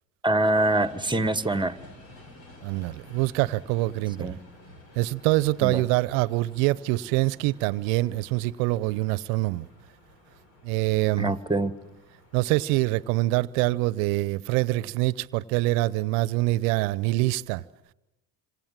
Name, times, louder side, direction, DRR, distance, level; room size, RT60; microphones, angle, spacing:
voice 1, 0.2-1.8 4.2-4.4 5.6-5.8 11.2-11.7, right 2 dB, 10° right, 1.5 m, -24 dB
sound 1, 0.5-13.1, left 1 dB, 80° left, 5.0 m, -51 dB
voice 2, 2.6-4.4 5.0-9.7 10.6-11.3 12.3-17.6, right 19 dB, 70° right, 0.9 m, -25 dB
27.0 x 26.5 x 7.5 m
hypercardioid pair, 55°, 48 cm